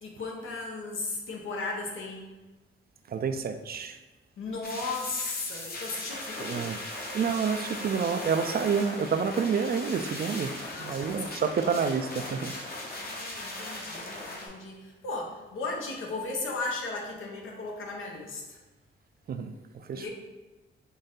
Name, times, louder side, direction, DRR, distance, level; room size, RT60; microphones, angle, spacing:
voice 1, 0.0-2.3 4.4-6.7 10.6-11.4 12.2-18.6 19.9-20.1, left 3 dB, 80° left, 0 dB, 0.9 m, -36 dB
voice 2, 3.1-4.0 6.4-6.8 7.1-10.5 10.8-12.5 19.3-20.1, right 6 dB, 50° right, 8 dB, 0.4 m, -29 dB
sound 1, 4.6-14.5, left 1 dB, 50° left, 0.9 m, -38 dB
4.0 x 2.6 x 3.7 m, 1.2 s
cardioid pair, 80°, 20 cm